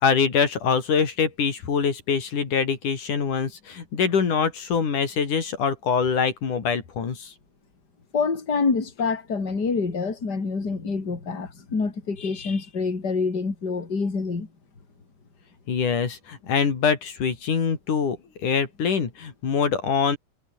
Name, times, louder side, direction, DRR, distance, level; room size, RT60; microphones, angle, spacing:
voice 1, 0.0-7.3 15.7-18.2 18.4-20.2, left 6 dB, 75° left, 5.0 m, -24 dB
voice 2, 8.1-14.5, left 4 dB, 30° left, 4.2 m, -26 dB
omnidirectional pair, 3.6 m